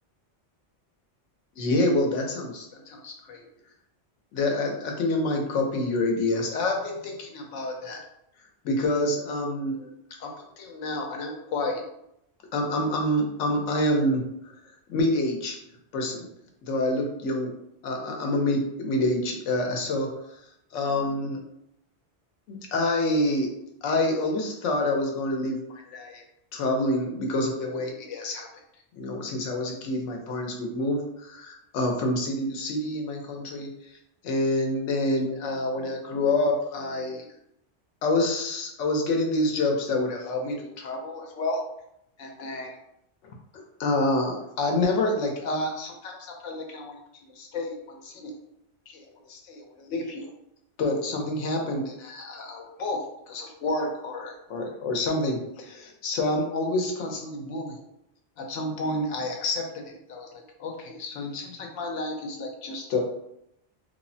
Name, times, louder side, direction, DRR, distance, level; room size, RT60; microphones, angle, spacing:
voice 1, 1.6-3.4 4.3-8.0 8.6-9.9 10.2-11.8 12.5-14.5 14.9-15.6 15.9-16.3 16.6-17.5 17.8-20.1 20.7-21.4 22.5-23.5 23.8-26.2 26.5-28.5 28.9-34.0 34.2-37.3 38.0-41.6 42.2-42.8 43.8-47.0 47.4-48.3 48.9-50.3 50.8-57.8 58.4-63.0, left 1 dB, 85° left, 2 dB, 1.0 m, -28 dB
3.2 x 2.0 x 2.6 m, 0.79 s
omnidirectional pair, 1.2 m